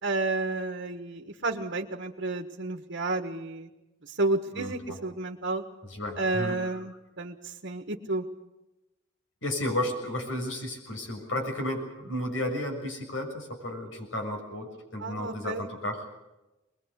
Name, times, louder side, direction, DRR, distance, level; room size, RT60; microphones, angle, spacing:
voice 1, 0.0-3.7 4.0-5.6 6.2-8.2 15.0-15.7, right 2 dB, 60° right, 4 dB, 1.5 m, -31 dB
voice 2, 5.9-6.6 9.4-16.1, left 1 dB, 70° left, 3 dB, 6.8 m, -33 dB
22.5 x 21.5 x 8.2 m, 1.0 s
head